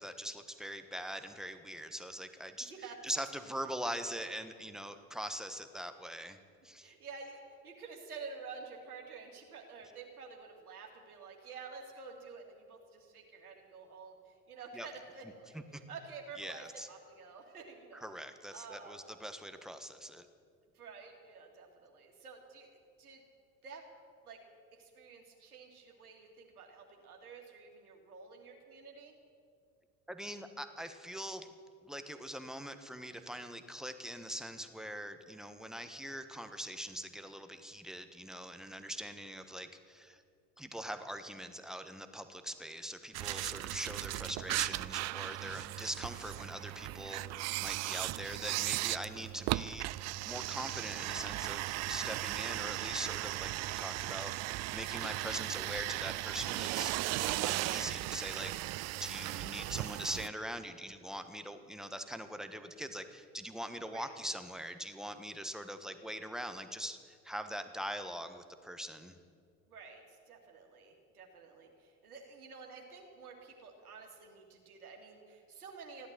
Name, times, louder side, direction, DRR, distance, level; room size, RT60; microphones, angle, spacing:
voice 1, 0.0-2.7 3.0-6.4 6.6-6.9 14.7-14.9 15.5-15.6 16.4-16.9 18.0-20.3 30.1-31.5 31.8-40.2 40.6-49.9 50.2-58.5 59.0-69.2, equal, ahead, 8 dB, 1.3 m, -42 dB
voice 2, 2.6-3.0 6.8-18.1 18.5-19.1 20.7-22.7 23.0-23.2 23.6-23.9 24.2-24.4 24.7-29.1 63.9-64.1 69.7-76.1, right 5 dB, 85° right, 1 dB, 2.3 m, -50 dB
sound 1, 43.1-60.3, right 18 dB, 40° right, 0.4 m, -37 dB
15.0 x 11.5 x 7.5 m, 2.2 s
hypercardioid pair, 65°, 43 cm